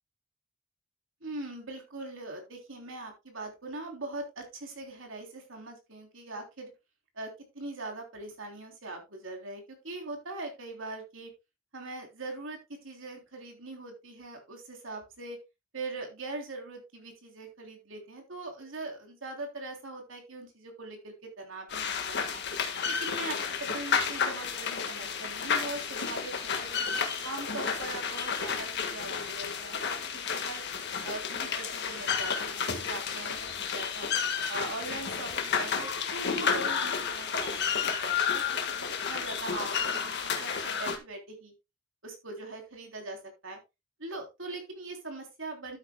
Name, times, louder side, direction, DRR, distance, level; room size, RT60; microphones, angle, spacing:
voice 1, 1.2-6.7 7.2-11.3 11.7-15.4 15.7-22.4 22.9-26.9 27.2-30.6 31.0-34.1 34.5-41.5 42.0-43.6 44.0-45.8, right 2 dB, 65° right, 2 dB, 3.4 m, -41 dB
sound 1, 21.7-41.0, left 6 dB, 55° left, 1.6 m, -31 dB
12.5 x 8.5 x 2.3 m, 0.24 s
head